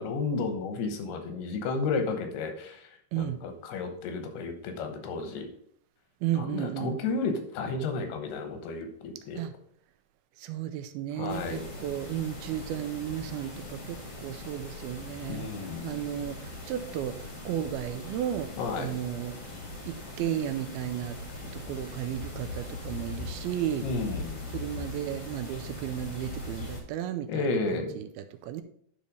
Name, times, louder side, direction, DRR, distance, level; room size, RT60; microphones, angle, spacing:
voice 1, 0.0-2.8 3.2-5.5 6.3-9.4 11.2-11.7 15.3-15.9 18.6-19.0 23.8-24.4 27.3-28.0, left 4 dB, 90° left, 6 dB, 3.1 m, -32 dB
voice 2, 6.2-7.0 9.3-9.5 10.4-15.5 15.8-17.2 17.5-18.5 18.8-19.4 19.8-23.9 24.5-28.6, right 11 dB, 80° right, 9 dB, 2.5 m, -34 dB
sound 1, 11.3-26.8, left 2 dB, 35° left, 1.3 m, -40 dB
10.5 x 4.2 x 5.2 m, 0.63 s
omnidirectional pair, 4.5 m